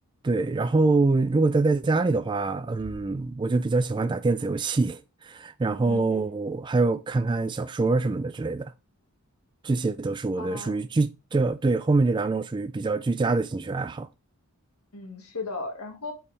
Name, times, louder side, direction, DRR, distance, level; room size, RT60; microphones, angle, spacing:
voice 1, 0.2-8.7 9.6-14.1, right 3 dB, 20° right, 0.3 m, -25 dB
Bass drum, 2.8-4.2, right 2 dB, 80° right, 0.9 m, -48 dB
voice 2, 5.8-6.3 10.4-10.8 14.9-16.1, left 3 dB, 85° left, 1.9 m, -36 dB
8.3 x 4.8 x 3.3 m
head